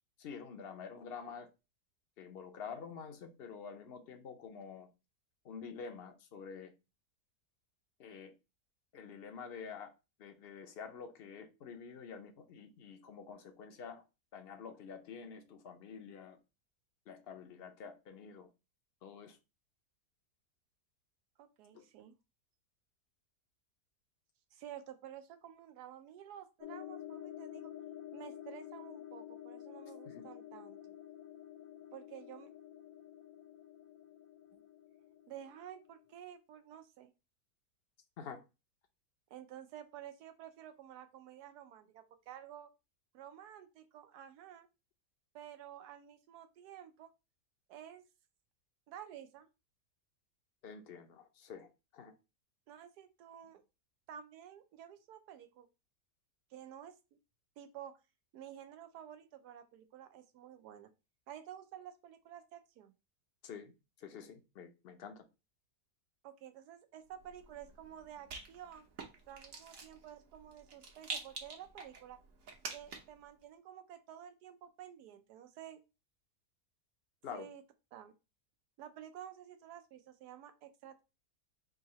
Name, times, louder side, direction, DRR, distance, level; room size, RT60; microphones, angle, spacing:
voice 1, 0.2-1.5 2.2-4.9 5.4-6.7 8.0-8.3 8.9-9.9 10.2-14.0 14.3-16.4 17.1-18.5 19.0-19.4 21.7-21.8 30.0-30.3 38.2-38.4 50.6-52.1 63.4-63.7 64.0-65.2 77.2-77.5, left 6 dB, 55° left, 0.7 m, -48 dB
voice 2, 21.4-22.1 24.5-27.7 28.1-30.9 31.9-32.5 34.5-34.6 35.3-37.1 39.3-42.7 43.1-44.7 45.3-47.1 47.7-48.0 48.9-49.5 52.7-53.6 54.1-55.7 56.5-57.2 57.6-58.0 58.3-60.9 61.3-62.9 66.2-68.9 69.3-72.2 72.7-75.8 77.3-77.6 77.9-78.1 78.8-81.0, right 10 dB, 85° right, 1.2 m, -51 dB
sound 1, 26.6-36.1, left 11 dB, 75° left, 1.1 m, -50 dB
Rattle, 67.1-73.2, right 4 dB, 60° right, 1.3 m, -48 dB
3.7 x 2.8 x 4.1 m
omnidirectional pair, 1.7 m